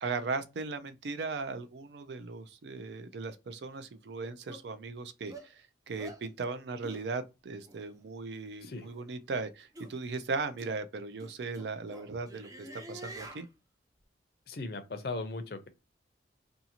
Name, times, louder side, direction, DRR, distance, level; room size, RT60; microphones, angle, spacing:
voice 1, 0.0-13.5, right 4 dB, 75° right, 0.4 m, -38 dB
sound 1, 3.7-3.8 4.5-4.6 5.3-5.5 6.0-6.2 6.8-7.0 7.6-7.8 8.7-9.0 9.7-9.9 10.6-10.7 11.2-13.5, right 1 dB, 20° right, 0.5 m, -47 dB
voice 2, 14.5-15.7, left 3 dB, 60° left, 0.5 m, -38 dB
2.7 x 2.4 x 2.8 m
head